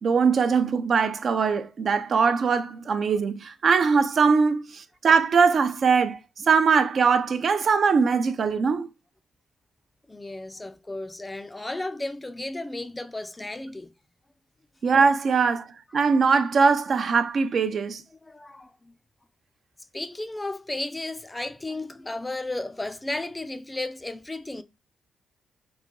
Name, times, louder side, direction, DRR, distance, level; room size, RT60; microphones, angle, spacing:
voice 1, 0.0-8.9 14.8-18.0, right 5 dB, 55° right, 0.6 m, -21 dB
voice 2, 10.1-13.9 18.2-18.9 19.9-24.6, left 2 dB, 15° left, 0.5 m, -34 dB
3.9 x 2.9 x 3.8 m
cardioid pair, 80°, 0 cm